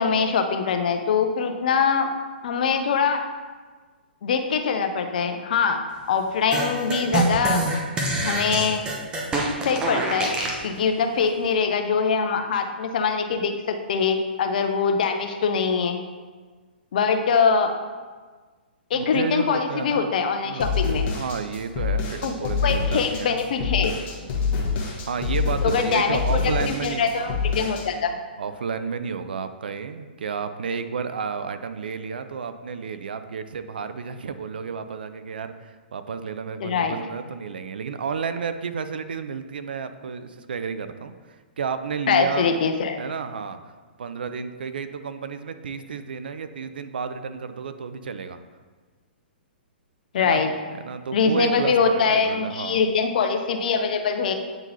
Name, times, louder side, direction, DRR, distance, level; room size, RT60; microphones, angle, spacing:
voice 1, 0.0-2.1 2.4-3.2 4.2-5.8 6.1-7.6 8.2-8.8 9.6-10.3 10.6-16.0 16.9-17.7 18.9-21.1 22.2-24.0 25.6-28.2 36.6-37.0 42.1-43.0 50.1-50.5 51.1-54.3, left 5 dB, 55° left, 6 dB, 0.6 m, -23 dB
sound 1, 6.5-10.6, right 2 dB, 15° right, 0.9 m, -25 dB
voice 2, 18.9-20.1 20.5-20.8 21.1-23.4 24.2-27.4 28.4-41.1 41.6-42.5 43.0-43.6 44.0-48.4 50.2-50.4 50.7-52.9, right 6 dB, 65° right, 11 dB, 0.4 m, -31 dB
sound 2, 20.6-27.9, left 5 dB, 30° left, 1.3 m, -26 dB
8.8 x 3.8 x 2.8 m, 1.4 s
figure-of-eight pair, 115°, 6 cm